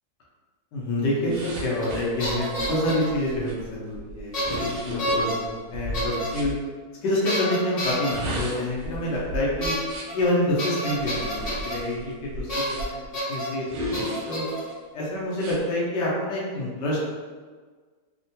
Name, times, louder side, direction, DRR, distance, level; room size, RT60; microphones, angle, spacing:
voice 1, 0.7-6.5 7.0-9.7 10.1-14.4 14.9-17.0, left 1 dB, 80° left, -5 dB, 1.4 m, -27 dB
sound 1, 1.3-6.5 7.9-10.2 11.0-13.1 13.7-14.7 15.3-15.6, equal, 90° right, 1.3 m, -35 dB
sound 2, 1.8-1.9 2.2-3.1 4.3-4.7 5.0-5.3 5.9-6.3 7.3-8.1 9.6-9.8 10.1-10.2 10.6-11.7 12.5-12.8 13.1-13.5 13.9-14.6, equal, 40° left, 1.0 m, -29 dB
3.5 x 2.1 x 2.7 m, 1.5 s
omnidirectional pair, 1.9 m